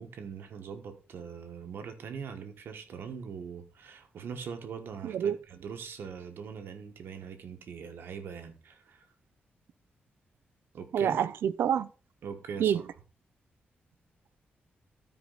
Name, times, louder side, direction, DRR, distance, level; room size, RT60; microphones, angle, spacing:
voice 1, 0.0-9.1 10.7-11.2 12.2-12.9, right 6 dB, 70° right, 1.2 m, -42 dB
voice 2, 5.0-5.4 10.9-11.9 12.6-12.8, right 9 dB, 90° right, 0.5 m, -27 dB
13.0 x 4.7 x 3.9 m
wide cardioid pair, 170°, 4 cm